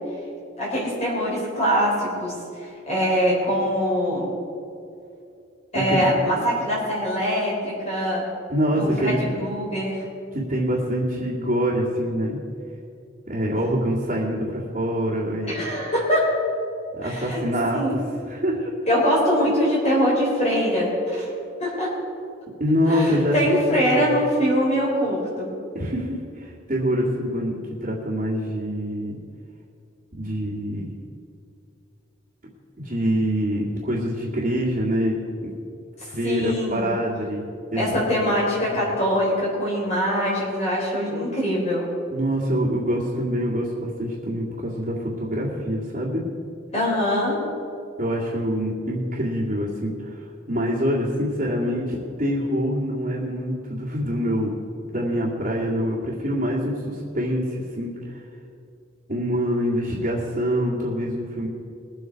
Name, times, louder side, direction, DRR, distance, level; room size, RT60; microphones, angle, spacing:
voice 1, 0.6-2.3 2.6-4.3 5.7-8.2 8.7-10.0 15.4-16.3 17.0-17.4 17.7-18.0 18.9-21.3 21.6-21.9 22.9-25.5 36.2-36.9 37.8-41.9 46.7-47.4, equal, 35° left, -5 dB, 3.6 m, -23 dB
voice 2, 5.7-6.1 8.5-9.2 10.3-12.4 13.3-15.6 16.9-18.0 18.3-18.7 22.6-23.5 23.9-24.1 25.7-27.5 27.8-29.2 30.2-30.9 32.8-35.2 35.4-35.5 36.1-37.4 37.7-37.8 38.5-38.6 42.1-46.2 48.0-54.5 54.9-58.2 59.1-61.5, equal, 40° right, -9 dB, 2.1 m, -25 dB
21.5 x 8.1 x 4.6 m, 2.5 s
head